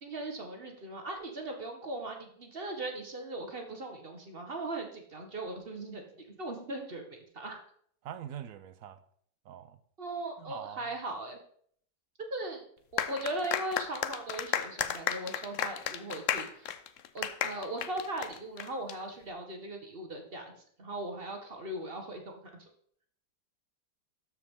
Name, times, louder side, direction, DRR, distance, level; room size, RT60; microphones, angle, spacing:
voice 1, 0.0-6.0 6.4-7.6 10.0-11.4 12.3-12.6 12.9-16.8 17.1-20.4 20.8-22.6, right 2 dB, 35° right, 1.2 m, -39 dB
voice 2, 8.0-9.0 9.5-9.8 10.4-10.8, right 10 dB, 70° right, 0.8 m, -43 dB
sound 1, 13.0-18.9, left 10 dB, 65° left, 0.7 m, -33 dB
13.0 x 4.8 x 3.6 m
omnidirectional pair, 1.9 m